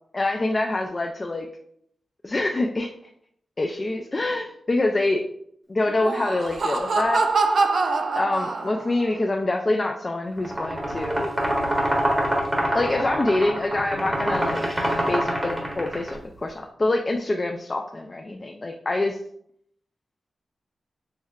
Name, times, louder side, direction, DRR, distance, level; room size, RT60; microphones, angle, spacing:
voice 1, 0.1-1.5 2.2-2.9 3.6-5.2 5.7-7.4 8.2-11.3 12.7-14.7 15.1-19.2, left 2 dB, 35° left, 2 dB, 0.3 m, -25 dB
Laughter, 5.9-9.1, right 3 dB, 65° right, 0.4 m, -24 dB
sound 1, 10.4-16.1, right 1 dB, 25° right, 1.2 m, -25 dB
6.2 x 2.1 x 2.3 m, 0.68 s
cardioid pair, 75°, 0 cm